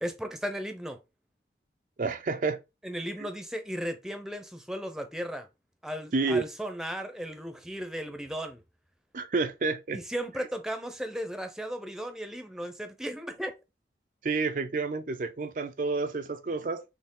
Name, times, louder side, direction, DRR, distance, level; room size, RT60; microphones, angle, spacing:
voice 1, 0.0-1.0 2.8-5.5 5.8-8.6 9.9-13.5, equal, 5° right, 0.6 m, -35 dB
voice 2, 2.0-2.6 6.1-6.4 9.1-10.0 14.2-16.8, right 3 dB, 45° right, 0.4 m, -29 dB
4.4 x 3.3 x 3.7 m
head